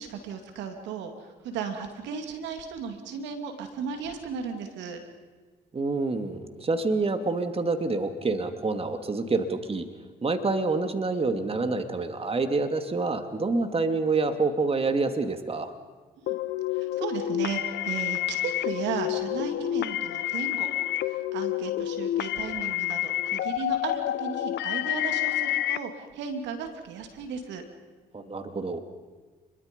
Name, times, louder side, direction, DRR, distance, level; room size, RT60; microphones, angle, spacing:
voice 1, 0.0-5.0 16.2-16.4 16.7-20.7 21.0-27.6, right 6 dB, 80° right, 6 dB, 2.6 m, -35 dB
voice 2, 5.7-9.9 10.2-15.7 28.1-28.8, right 3 dB, 30° right, 7 dB, 2.5 m, -27 dB
sound 1, 16.3-25.8, left 13 dB, 70° left, 0.8 m, -29 dB
28.5 x 22.5 x 5.4 m, 1.4 s
supercardioid pair, 60°, 18 cm